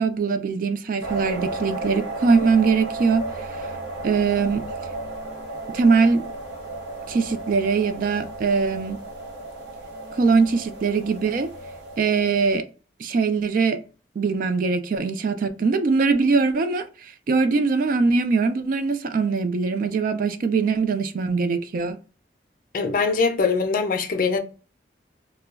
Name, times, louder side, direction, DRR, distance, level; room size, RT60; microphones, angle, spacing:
voice 1, 0.0-3.5 4.0-4.6 5.7-6.2 7.1-9.0 10.1-11.5 12.0-12.7 13.0-13.8 14.2-22.0, right 4 dB, 50° right, 0.3 m, -22 dB
sound 1, 1.0-12.6, right 2 dB, 85° right, 0.8 m, -34 dB
voice 2, 22.7-24.4, left 4 dB, 50° left, 0.4 m, -22 dB
2.2 x 2.0 x 3.4 m
head